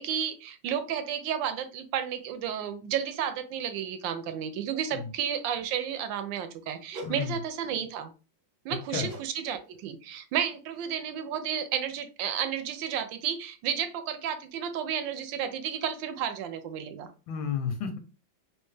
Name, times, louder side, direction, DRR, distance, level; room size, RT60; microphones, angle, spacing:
voice 1, 0.0-8.1 8.6-17.1, right 8 dB, 75° right, 1.2 m, -32 dB
sound 1, 6.9-7.2 9.0-9.3 9.6-9.9 10.4-10.5, right 1 dB, 60° right, 0.5 m, -42 dB
voice 2, 7.0-7.4 8.9-9.1 17.3-18.0, left 7 dB, 85° left, 1.4 m, -32 dB
3.3 x 2.8 x 3.2 m
omnidirectional pair, 2.1 m